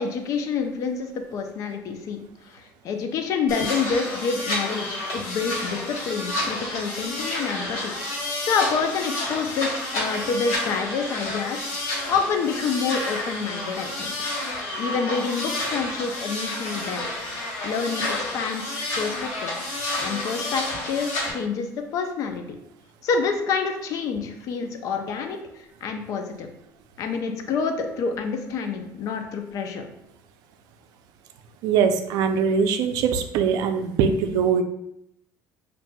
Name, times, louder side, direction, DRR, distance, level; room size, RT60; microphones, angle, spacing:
voice 1, 0.0-2.2 2.5-7.9 8.2-14.1 14.8-17.0 17.6-22.4 23.0-25.4 25.8-26.5 27.0-29.9, left 5 dB, 50° left, 5 dB, 0.5 m, -28 dB
sound 1, 3.5-21.3, left 1 dB, 75° left, 1.2 m, -30 dB
voice 2, 31.6-34.6, right 6 dB, 70° right, 7 dB, 0.4 m, -22 dB
5.6 x 2.6 x 2.2 m, 0.81 s
cardioid pair, 145°, 7 cm